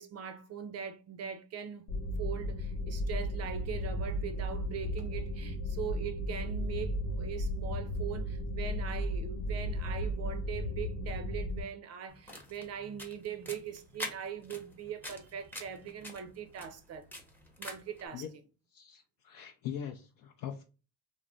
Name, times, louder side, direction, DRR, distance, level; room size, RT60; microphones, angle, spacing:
voice 1, 0.0-1.9 2.2-17.0 17.6-18.2, right 8 dB, 40° right, 0.5 m, -41 dB
sound 1, 1.9-11.6, equal, 80° left, 0.9 m, -35 dB
sound 2, 12.1-18.0, left 1 dB, 5° left, 0.6 m, -46 dB
voice 2, 18.7-20.6, left 9 dB, 55° left, 0.4 m, -42 dB
2.4 x 2.0 x 3.5 m
cardioid pair, 120°, 42 cm